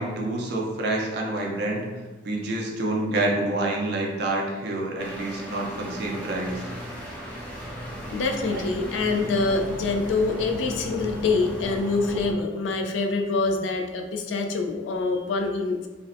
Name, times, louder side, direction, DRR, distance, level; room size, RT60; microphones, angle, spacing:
voice 1, 0.0-1.9 2.2-6.6 8.5-8.6, right 2 dB, 65° right, -1 dB, 0.5 m, -27 dB
sound 1, 5.0-12.3, equal, 10° left, 0.4 m, -36 dB
voice 2, 8.1-15.9, left 3 dB, 80° left, 4 dB, 0.3 m, -25 dB
2.4 x 2.1 x 2.5 m, 1.2 s
head